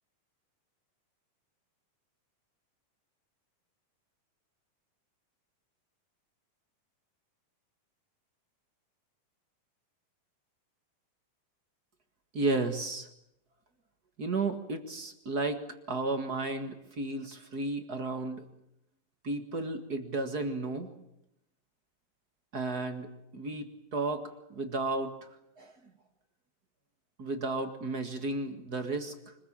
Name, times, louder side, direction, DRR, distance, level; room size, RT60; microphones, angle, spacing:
voice 1, 12.3-13.1 14.2-18.5 19.2-20.9 22.5-25.3 25.6-25.9 27.2-29.3, right 3 dB, 40° right, 7 dB, 1.6 m, -33 dB
25.0 x 21.5 x 8.8 m, 0.82 s
omnidirectional pair, 3.9 m